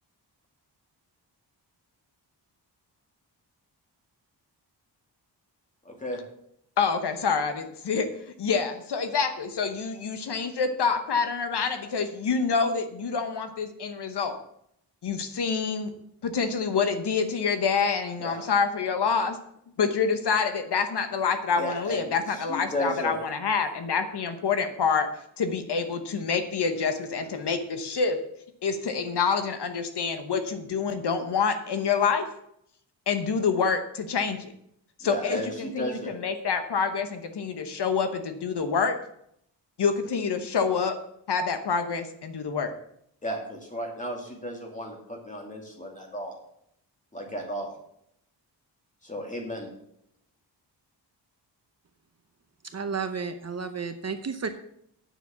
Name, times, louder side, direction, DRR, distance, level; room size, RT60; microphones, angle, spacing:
voice 1, 5.9-6.2 18.2-18.4 21.6-22.0 22.5-23.2 35.0-36.2 43.2-46.3 47.1-47.7 49.0-49.7, equal, 15° left, 1 dB, 2.5 m, -34 dB
voice 2, 6.8-8.1 8.4-14.4 15.0-15.9 16.2-19.4 19.8-25.1 25.4-28.2 28.6-32.3 33.1-34.5 35.0-39.0 39.8-41.0 41.3-42.7, left 5 dB, 65° left, 8 dB, 1.1 m, -27 dB
voice 3, 52.6-54.5, right 5 dB, 35° right, 8 dB, 0.7 m, -32 dB
9.1 x 7.0 x 6.9 m, 0.72 s
wide cardioid pair, 165°, 43 cm